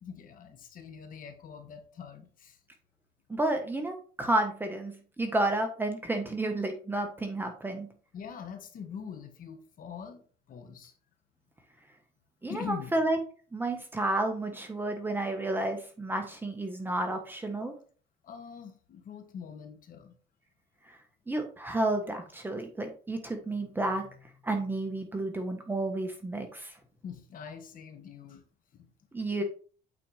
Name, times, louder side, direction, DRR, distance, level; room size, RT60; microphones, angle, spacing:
voice 1, 0.0-2.6 8.1-10.9 12.5-12.9 18.2-20.2 27.0-28.4 28.7-28.9, left 7 dB, 55° left, 6 dB, 1.4 m, -43 dB
voice 2, 3.3-7.9 12.4-13.2 13.5-17.7 20.9-21.0 21.3-24.1 24.4-26.7 29.1-29.4, right 2 dB, 10° right, 4 dB, 1.3 m, -31 dB
8.6 x 4.3 x 3.4 m, 0.41 s
cardioid pair, 110°, 17 cm